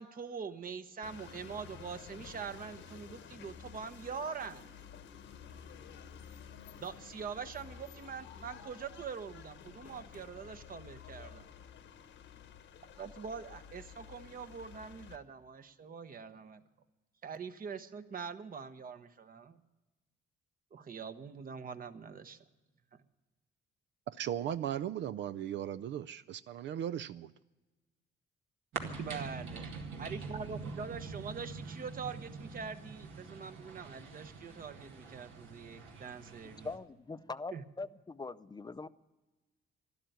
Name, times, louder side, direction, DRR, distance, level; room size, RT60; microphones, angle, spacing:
voice 1, 0.0-4.7 6.8-11.5 12.9-16.6 17.2-19.6 20.7-22.4 29.0-29.7 30.0-36.7 37.5-37.6, right 6 dB, 45° right, 10 dB, 1.0 m, -44 dB
sound 1, 1.0-15.2, left 7 dB, 70° left, 1.1 m, -52 dB
voice 2, 24.1-27.3, right 10 dB, 65° right, 14 dB, 0.4 m, -37 dB
sound 2, 28.7-36.8, right 4 dB, 80° right, 2.0 m, -44 dB
voice 3, 36.6-38.9, left 3 dB, 20° left, 13 dB, 0.5 m, -42 dB
12.5 x 12.5 x 9.2 m, 1.2 s
cardioid pair, 90°, 20 cm